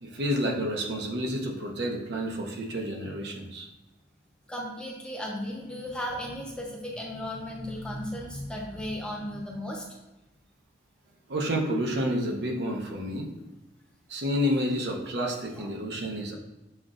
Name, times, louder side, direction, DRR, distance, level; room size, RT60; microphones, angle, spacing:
voice 1, 0.0-3.7 11.3-13.3 14.1-16.3, equal, 70° right, 0 dB, 0.8 m, -29 dB
voice 2, 4.5-9.9 15.5-15.7, equal, 5° left, -3 dB, 0.7 m, -35 dB
7.3 x 2.5 x 2.5 m, 0.99 s
head